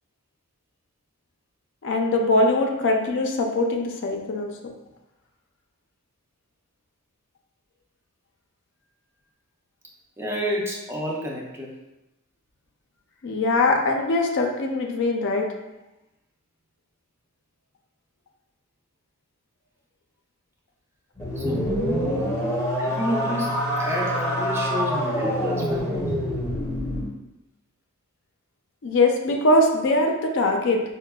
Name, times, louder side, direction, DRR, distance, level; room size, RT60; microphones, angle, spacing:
voice 1, 1.8-4.7 13.2-15.5 28.8-30.8, left 2 dB, 55° left, 2 dB, 0.4 m, -22 dB
voice 2, 10.2-11.8 21.4-21.7 22.8-26.2, equal, 10° right, -2 dB, 0.3 m, -30 dB
sound 1, 21.1-27.1, equal, 15° left, 0.7 m, -26 dB
4.7 x 2.1 x 2.2 m, 0.98 s
head